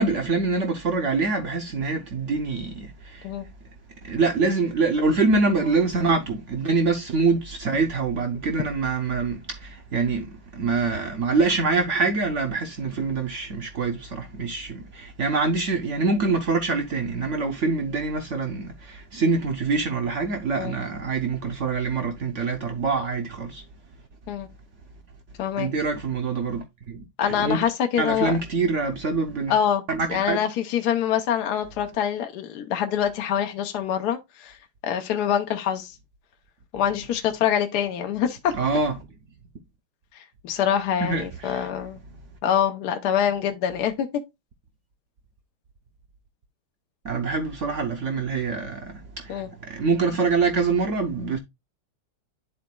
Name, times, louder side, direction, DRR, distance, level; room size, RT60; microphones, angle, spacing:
voice 1, 0.0-3.3 4.0-23.6 25.6-27.6 28.0-29.5 29.9-30.4 38.5-39.0 41.0-41.7 47.0-51.4, right 4 dB, 85° right, 0.6 m, -25 dB
voice 2, 27.2-28.3 29.5-29.8 30.1-34.6 34.8-35.9 36.7-38.5 40.4-42.0 42.4-44.1 49.3-49.5, left 9 dB, 65° left, 1.1 m, -25 dB
11.5 x 4.0 x 2.2 m
omnidirectional pair, 2.3 m